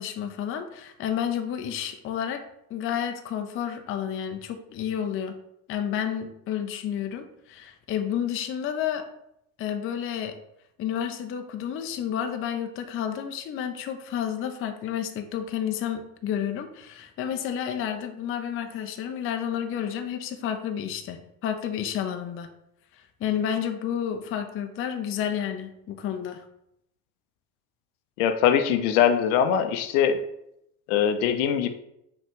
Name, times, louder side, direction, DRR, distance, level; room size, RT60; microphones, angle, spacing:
voice 1, 0.0-2.4 2.7-5.4 5.7-9.1 9.6-10.4 10.8-22.5 22.9-26.4, left 9 dB, 30° left, 7 dB, 0.5 m, -30 dB
voice 2, 28.2-30.2 30.9-31.7, left 8 dB, 65° left, 8 dB, 0.6 m, -22 dB
5.7 x 2.4 x 3.6 m, 0.78 s
hypercardioid pair, 70°, 48 cm